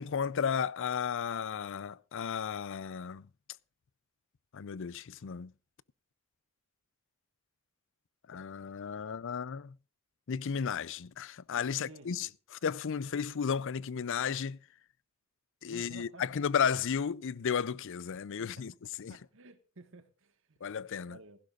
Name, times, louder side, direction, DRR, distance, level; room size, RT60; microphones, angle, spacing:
voice 1, 0.0-3.3 4.5-5.5 8.3-9.8 10.3-14.6 15.6-18.7 19.0-19.2 20.6-21.2, left 7 dB, 60° left, 0.5 m, -34 dB
voice 2, 11.7-12.2 15.7-16.2 18.4-18.6 19.1-20.8 21.1-21.4, right 2 dB, 65° right, 1.6 m, -53 dB
16.0 x 15.5 x 2.5 m
head